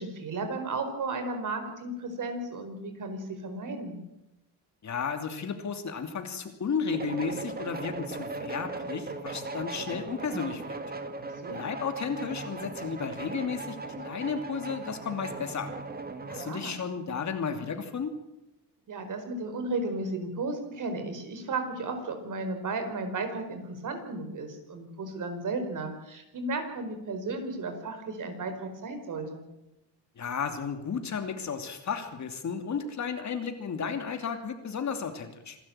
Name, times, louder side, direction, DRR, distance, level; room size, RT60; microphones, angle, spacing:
voice 1, 0.0-4.0 11.4-11.7 16.2-16.8 18.9-29.4, right 3 dB, 50° right, 7 dB, 4.7 m, -34 dB
voice 2, 4.8-10.8 11.5-15.7 16.3-18.1 30.2-35.6, left 6 dB, 45° left, 7 dB, 2.8 m, -33 dB
sound 1, 6.9-16.6, right 3 dB, 25° right, 1.8 m, -38 dB
26.5 x 12.5 x 8.8 m, 0.89 s
cardioid pair, 125°, 39 cm